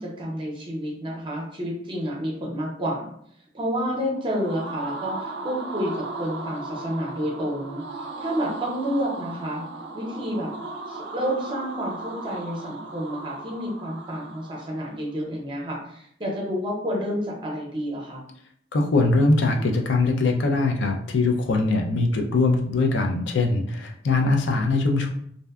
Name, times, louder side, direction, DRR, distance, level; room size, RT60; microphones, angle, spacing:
voice 1, 0.0-3.1 3.5-9.7 9.9-10.5 10.9-18.2, equal, 30° right, -2 dB, 0.6 m, -29 dB
sound 1, 4.1-15.0, right 3 dB, 70° right, 0.3 m, -37 dB
voice 2, 18.7-25.1, left 3 dB, 80° left, 3 dB, 0.4 m, -22 dB
2.6 x 2.1 x 2.3 m, 0.67 s
head